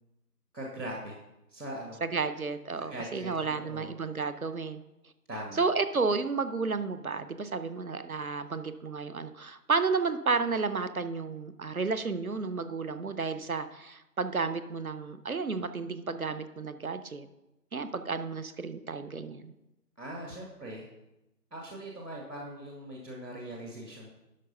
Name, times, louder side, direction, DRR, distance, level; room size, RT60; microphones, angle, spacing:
voice 1, 0.5-1.2 1.5-2.0 2.9-3.9 5.3-5.6 20.0-20.9 21.5-24.1, right 1 dB, 85° right, -1 dB, 2.0 m, -41 dB
voice 2, 2.0-4.8 5.5-17.3 17.7-19.5, right 4 dB, 60° right, 12 dB, 0.7 m, -32 dB
11.5 x 4.1 x 5.4 m, 0.95 s
figure-of-eight pair, 175°, 48 cm